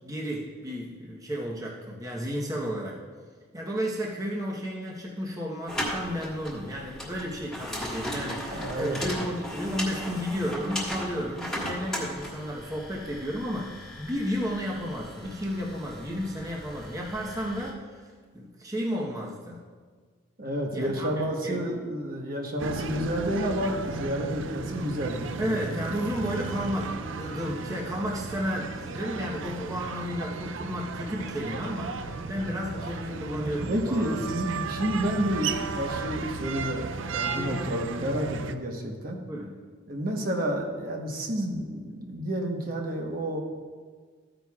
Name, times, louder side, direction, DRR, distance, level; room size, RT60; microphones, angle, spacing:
voice 1, 0.0-3.0 3.5-19.6 20.7-21.6 25.4-32.0 32.3-34.2 37.3-37.7 39.3-39.5, equal, 15° right, -3 dB, 1.0 m, -33 dB
sound 1, 5.7-17.7, equal, ahead, 1.6 m, -37 dB
voice 2, 8.5-9.3 20.4-25.2 33.7-39.2 39.9-43.4, equal, 45° right, 1 dB, 1.1 m, -30 dB
sound 2, 22.6-38.6, right 4 dB, 70° right, 0.5 m, -35 dB
14.0 x 9.1 x 2.4 m, 1.5 s
head